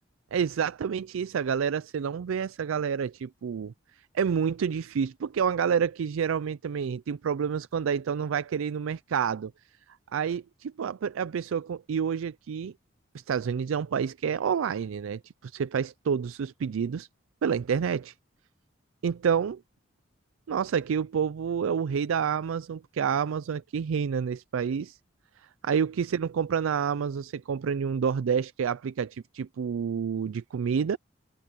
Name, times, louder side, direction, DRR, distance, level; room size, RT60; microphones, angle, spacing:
voice 1, 0.3-3.7 4.1-9.5 10.1-12.7 13.1-17.1 17.4-18.1 19.0-19.6 20.5-25.0 25.6-31.0, right 7 dB, 90° right, 0.4 m, -28 dB
head